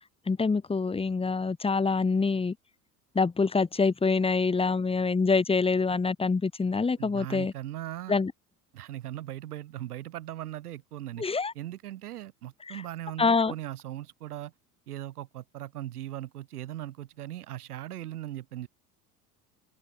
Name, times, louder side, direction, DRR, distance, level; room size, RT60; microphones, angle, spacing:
voice 1, 0.3-2.5 3.1-7.5 8.1-8.3 11.2-11.5 12.7-12.8 13.2-13.5, left 4 dB, 10° left, 1.1 m, -25 dB
voice 2, 7.0-8.2 8.7-11.3 11.5-14.5 14.9-18.7, right 13 dB, 75° right, 4.2 m, -39 dB
open air
figure-of-eight pair, 70°, 46 cm